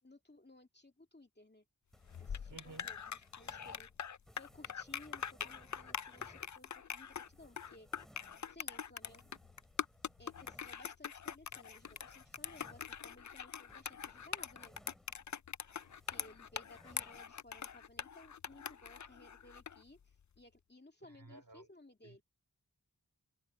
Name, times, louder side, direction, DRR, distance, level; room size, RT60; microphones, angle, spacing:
voice 1, 0.0-1.6 2.2-3.9 4.3-7.9 8.5-9.3 10.2-14.7 16.1-22.2, left 2 dB, 30° left, 2.5 m, -59 dB
sound 1, 1.9-15.4 15.7-17.3, equal, ahead, 7.7 m, -64 dB
sound 2, 2.0-19.8, left 7 dB, 50° left, 0.5 m, -44 dB
voice 2, 2.5-2.9 21.0-21.7 22.0-22.2, right 3 dB, 65° right, 3.1 m, -54 dB
wide cardioid pair, 65°, 36 cm